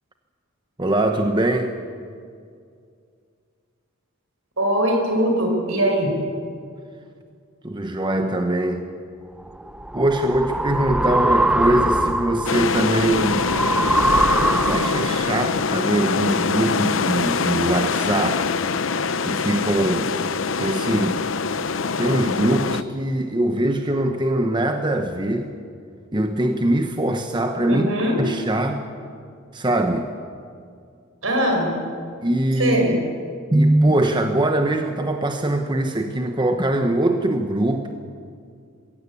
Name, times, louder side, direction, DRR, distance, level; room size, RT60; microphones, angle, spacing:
voice 1, 0.8-1.8 7.6-8.8 9.9-13.5 14.6-18.5 19.2-20.1 20.6-21.3 22.0-25.5 26.1-27.9 28.2-28.8 29.5-30.1 32.2-33.0 33.5-37.9, right 1 dB, 20° right, 5 dB, 1.0 m, -22 dB
voice 2, 4.6-6.1 27.7-28.2 31.2-31.7 32.6-32.9, equal, 75° right, 2 dB, 5.6 m, -21 dB
sound 1, 9.5-15.2, right 1 dB, 5° right, 0.5 m, -22 dB
sound 2, 12.5-22.8, left 5 dB, 65° left, 0.7 m, -24 dB
22.0 x 17.0 x 8.4 m, 2.2 s
head